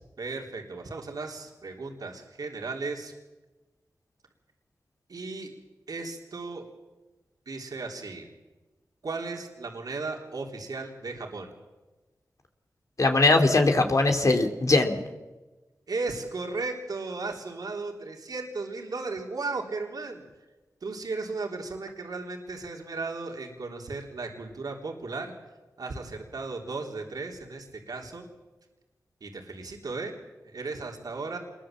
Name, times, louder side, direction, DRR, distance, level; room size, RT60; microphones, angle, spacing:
voice 1, 0.2-3.1 5.1-5.5 5.9-6.7 7.5-8.3 9.0-11.5 15.9-20.2 20.8-25.3 25.8-28.3 29.2-30.1 30.4-31.4, right 3 dB, 75° right, 1 dB, 3.6 m, -35 dB
voice 2, 13.0-15.0, left 2 dB, 55° left, 4 dB, 3.0 m, -21 dB
26.5 x 21.5 x 7.6 m, 1.2 s
cardioid pair, 45°, 7 cm